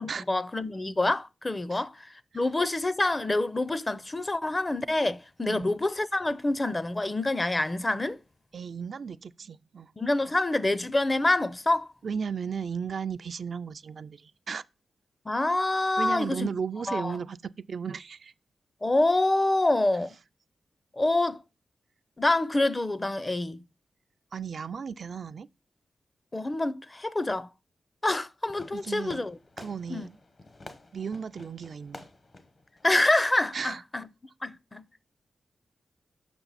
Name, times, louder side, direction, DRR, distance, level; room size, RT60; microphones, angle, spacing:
voice 1, 0.0-8.2 10.0-11.9 15.3-16.5 16.9-17.2 18.8-20.2 20.9-21.4 22.2-23.6 26.3-27.5 28.0-29.4 29.9-30.1 32.8-34.1 34.4-34.8, left 2 dB, 25° left, 0.6 m, -26 dB
voice 2, 8.5-9.9 12.0-14.6 16.0-18.3 24.3-25.5 28.7-29.3 29.6-30.2 30.9-32.1 33.5-33.8, right 6 dB, 65° right, 0.3 m, -35 dB
Fireworks, 28.5-33.5, left 2 dB, 45° left, 1.0 m, -49 dB
6.9 x 5.7 x 4.1 m
cardioid pair, 55°, 0 cm